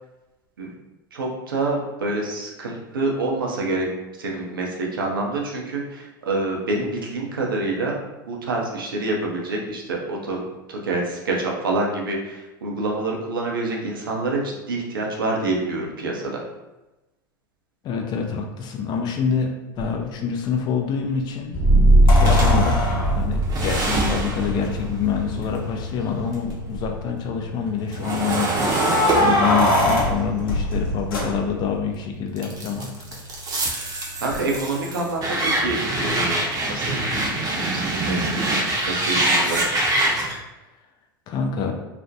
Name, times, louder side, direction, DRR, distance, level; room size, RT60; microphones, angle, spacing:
voice 1, 1.1-3.9 4.2-8.0 8.3-16.4 34.2-36.4 36.7-37.0 37.6-39.7, right 2 dB, 85° right, -1 dB, 0.5 m, -27 dB
voice 2, 17.8-21.6 22.1-33.2 41.3-41.7, left 6 dB, 40° left, 3 dB, 0.5 m, -26 dB
sound 1, 19.8-19.9 22.1-24.5 25.4-25.5 25.8-25.9 26.5-26.9 28.6-31.8 34.3-34.4, left 1 dB, 80° left, 0.7 m, -23 dB
sound 2, 21.5-32.8, right 1 dB, 20° left, 0.8 m, -23 dB
sound 3, 22.3-26.5 26.9-31.8 32.4-40.4, right 2 dB, 35° right, 0.6 m, -25 dB
2.4 x 2.1 x 2.6 m, 1.0 s
hypercardioid pair, 85°, 11 cm